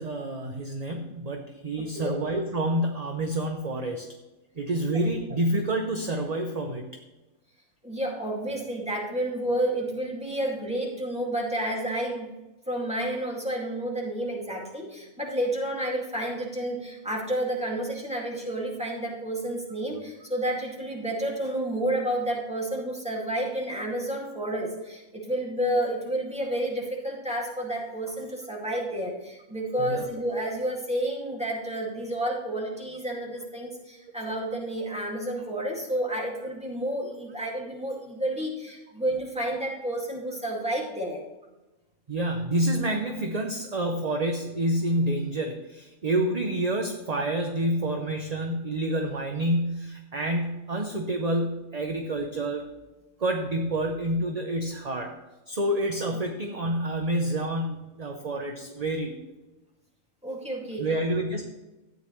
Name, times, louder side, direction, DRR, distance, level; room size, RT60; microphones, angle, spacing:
voice 1, 0.0-4.1 4.5-6.8 29.8-30.1 42.1-52.6 53.2-55.1 55.5-59.2 60.8-61.4, right 1 dB, 35° right, 3 dB, 0.8 m, -28 dB
voice 2, 1.8-2.1 7.8-12.3 12.7-41.2 60.2-60.9, right 1 dB, 5° right, -2 dB, 2.2 m, -30 dB
13.0 x 9.2 x 3.2 m, 1.1 s
omnidirectional pair, 1.4 m